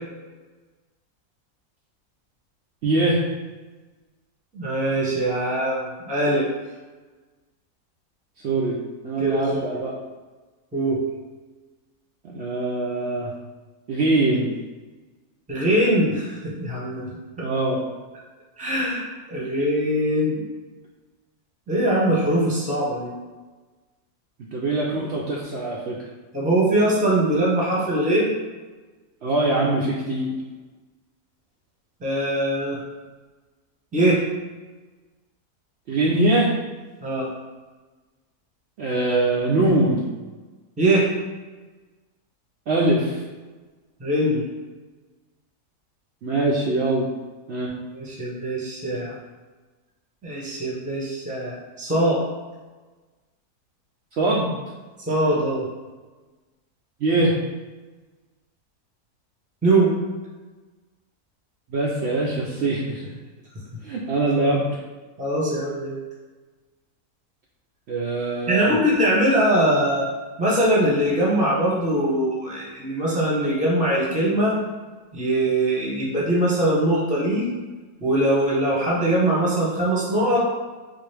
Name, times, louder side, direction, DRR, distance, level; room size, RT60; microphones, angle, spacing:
voice 1, 2.8-3.2 8.4-8.8 9.0-10.0 12.3-13.3 13.9-14.5 17.4-17.8 24.5-26.0 29.2-30.3 35.9-36.5 38.8-40.1 42.7-43.2 46.2-47.1 47.5-47.7 54.2-54.5 57.0-57.3 61.7-63.1 63.8-64.7 67.9-68.8, right 2 dB, 85° right, -4 dB, 0.5 m, -22 dB
voice 2, 4.5-6.5 9.2-9.8 10.7-11.0 15.5-17.1 17.4-17.5 18.6-19.0 19.3-20.4 21.7-23.1 26.3-28.3 32.0-32.8 33.9-34.2 37.0-37.3 40.8-41.1 44.0-44.4 47.9-49.1 50.2-52.2 55.1-55.6 59.6-59.9 65.2-66.0 68.5-70.1 70.4-74.6 75.1-77.5 78.0-80.5, right 1 dB, 10° right, -5 dB, 0.6 m, -22 dB
3.8 x 2.4 x 3.3 m, 1.3 s
omnidirectional pair, 1.7 m